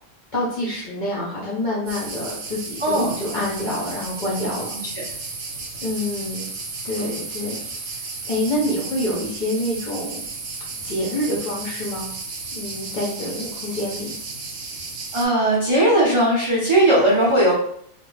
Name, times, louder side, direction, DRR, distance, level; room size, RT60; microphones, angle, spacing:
voice 1, 0.3-4.7 5.8-6.5 6.8-7.6 8.3-10.2 10.8-12.1 12.5-14.2, left 1 dB, 55° left, -6 dB, 0.5 m, -27 dB
sound 1, 1.9-15.3, right 3 dB, 65° right, 0.8 m, -33 dB
voice 2, 2.8-3.1 15.1-17.6, right 1 dB, 50° right, -6 dB, 0.3 m, -18 dB
2.3 x 2.1 x 3.1 m, 0.65 s
omnidirectional pair, 1.4 m